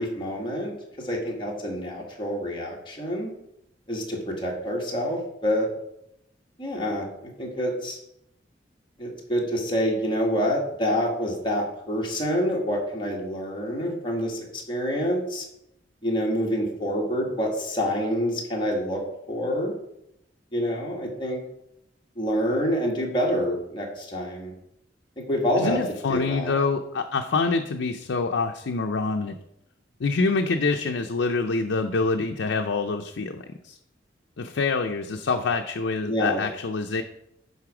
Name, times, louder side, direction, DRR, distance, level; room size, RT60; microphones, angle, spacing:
voice 1, 0.0-3.3 3.9-5.7 6.6-7.1 7.4-8.0 9.0-15.5 16.0-19.0 19.3-19.7 20.5-21.4 22.2-24.5 25.3-25.8 26.1-26.5 36.0-36.4, equal, 30° left, -2 dB, 1.8 m, -27 dB
voice 2, 25.6-29.4 30.0-33.8 34.4-37.0, left 4 dB, 90° left, 4 dB, 0.5 m, -26 dB
11.0 x 4.1 x 4.9 m, 0.80 s
head